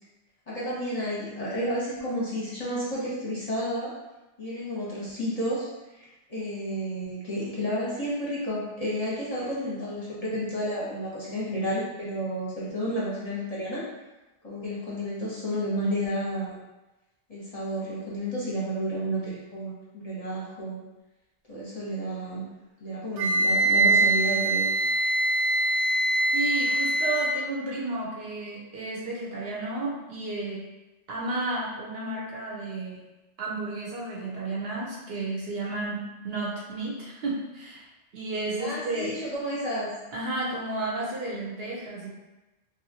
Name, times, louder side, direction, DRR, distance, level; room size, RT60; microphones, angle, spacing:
voice 1, 0.5-3.9 4.4-5.7 6.0-13.8 14.4-16.6 17.3-20.8 21.5-22.4 22.8-24.6 38.6-39.9, equal, 35° left, -7 dB, 0.7 m, -31 dB
Wind instrument woodwind instrument, 23.2-27.4, right 2 dB, 85° right, 1.0 m, -23 dB
voice 2, 26.3-30.6 31.1-33.0 33.4-37.9 38.1-39.2 40.1-42.1, right 2 dB, 60° right, -3 dB, 0.8 m, -32 dB
3.1 x 2.7 x 2.7 m, 1.1 s
omnidirectional pair, 1.2 m